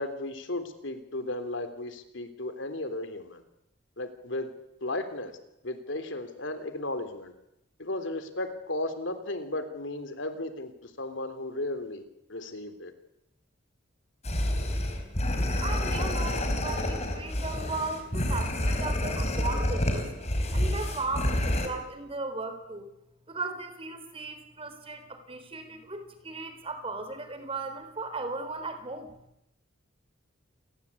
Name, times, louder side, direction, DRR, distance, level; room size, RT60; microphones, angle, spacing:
voice 1, 0.0-3.4 4.0-4.5 4.8-5.3 5.6-7.3 7.8-10.7 11.0-12.0 12.3-12.9, left 2 dB, 70° left, 9 dB, 3.4 m, -35 dB
sound 1, 14.2-21.7, left 1 dB, 35° left, 4.7 m, -28 dB
voice 2, 15.6-20.1 20.5-22.9 23.3-29.1, right 3 dB, 30° right, 9 dB, 4.3 m, -36 dB
29.0 x 20.0 x 8.5 m, 0.84 s
head